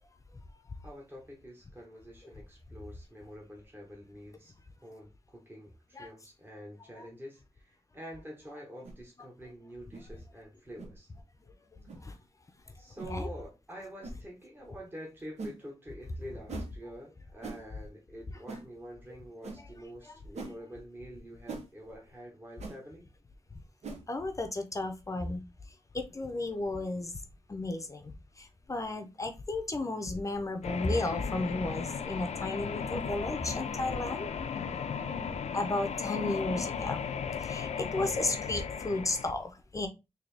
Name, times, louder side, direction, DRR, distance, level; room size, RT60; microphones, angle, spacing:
voice 1, 0.8-4.5 4.8-11.1 12.7-23.1, equal, 20° right, 1.0 m, -47 dB
sound 1, 8.8-9.0 9.9-10.1 10.8-11.0 11.9-12.0 13.0-13.2 14.0-14.2 15.4-15.6 16.5-16.7 17.4-17.6 18.5-18.7 19.4-19.6 20.3-20.6 21.5-21.7 22.6-22.8 23.8-24.0, right 3 dB, 85° right, 0.8 m, -41 dB
voice 2, 24.1-25.4 25.9-27.1 27.5-28.1 28.4-34.3 35.5-37.0 37.4-39.9, left 2 dB, 30° left, 0.5 m, -33 dB
sound 2, 30.6-39.3, left 6 dB, 85° left, 0.4 m, -36 dB
3.8 x 2.7 x 3.3 m
wide cardioid pair, 140°, 11 cm